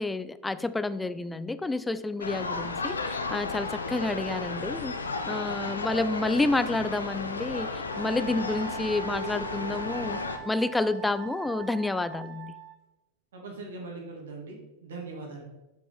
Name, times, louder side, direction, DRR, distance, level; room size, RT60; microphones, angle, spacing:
voice 1, 0.0-4.9 5.3-10.2 10.4-12.5, left 2 dB, 10° left, 14 dB, 0.4 m, -29 dB
sound 1, 2.2-10.4, left 4 dB, 75° left, 0.7 m, -33 dB
Wind instrument woodwind instrument, 7.9-12.8, right 11 dB, 35° right, 2.0 m, -42 dB
voice 2, 13.3-15.4, right 3 dB, 60° right, 0 dB, 2.3 m, -41 dB
7.8 x 6.0 x 4.0 m, 1.0 s
figure-of-eight pair, 90°, 0 cm